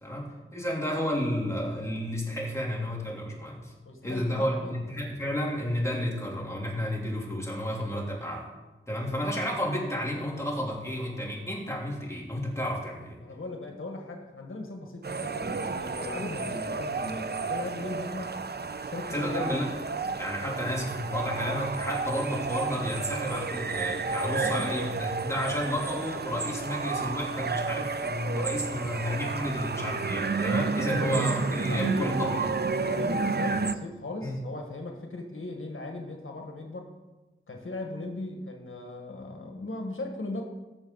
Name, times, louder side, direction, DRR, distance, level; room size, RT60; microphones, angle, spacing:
voice 1, 0.0-3.7 4.0-8.5 8.9-13.2 19.1-19.7 20.2-32.4 34.2-34.4, equal, 15° left, -3 dB, 3.2 m, -31 dB
voice 2, 3.8-4.8 13.2-18.3 18.8-19.5 20.0-20.8 24.4-24.7 30.8-31.1 31.6-32.2 32.7-36.9 37.5-40.4, left 2 dB, 85° left, 2 dB, 1.5 m, -38 dB
sound 1, 15.0-33.7, right 4 dB, 55° right, 0.6 m, -31 dB
17.5 x 7.0 x 4.0 m, 1.1 s
wide cardioid pair, 65°, 21 cm